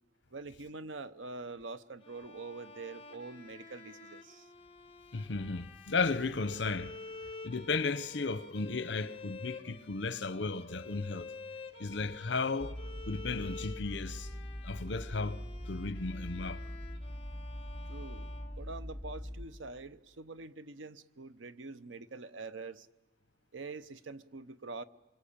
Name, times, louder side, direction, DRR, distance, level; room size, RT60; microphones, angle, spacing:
voice 1, 0.3-4.5 17.9-22.9 23.5-24.8, right 3 dB, 85° right, 0.9 m, -45 dB
Bowed string instrument, 2.0-19.2, left 3 dB, 30° left, 1.9 m, -50 dB
voice 2, 5.1-7.0 7.4-11.3 11.8-12.8 13.1-14.3 14.6-16.6, left 4 dB, 65° left, 0.9 m, -34 dB
sound 1, 12.6-19.5, equal, 5° right, 2.7 m, -42 dB
27.0 x 24.5 x 8.7 m
head